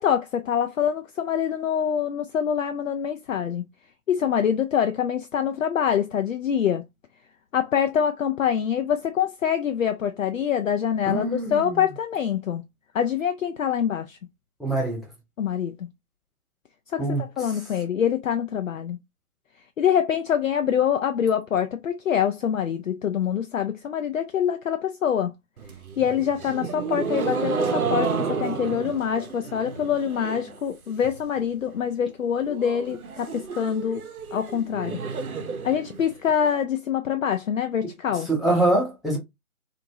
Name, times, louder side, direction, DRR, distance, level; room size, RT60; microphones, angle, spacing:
voice 1, 0.0-3.6 4.1-6.8 7.5-12.6 12.9-14.2 15.4-15.9 16.9-17.0 17.4-19.0 19.8-25.3 26.0-34.0 34.3-35.0 35.6-38.3, left 8 dB, 65° left, 0.5 m, -25 dB
voice 2, 11.0-11.8 14.6-15.0 17.0-17.2 38.3-39.2, right 2 dB, ahead, 0.4 m, -24 dB
sound 1, 25.6-30.6 30.9-31.4 31.7-31.8 32.1-32.2 32.5-36.5, right 5 dB, 80° right, 0.7 m, -31 dB
2.7 x 2.5 x 2.9 m
figure-of-eight pair, 145°, 43 cm